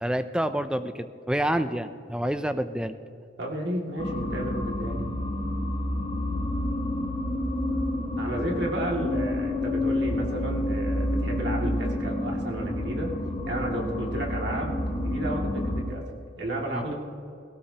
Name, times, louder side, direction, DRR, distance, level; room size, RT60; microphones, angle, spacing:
voice 1, 0.0-2.9 16.7-16.8, right 1 dB, 5° right, 11 dB, 0.4 m, -28 dB
voice 2, 3.4-5.0 8.2-13.1 13.5-16.0 16.4-16.9, right 1 dB, 60° right, -1 dB, 2.3 m, -32 dB
sound 1, 4.0-15.8, left 1 dB, 30° left, 2.5 m, -29 dB
17.5 x 17.0 x 2.9 m, 2.5 s
head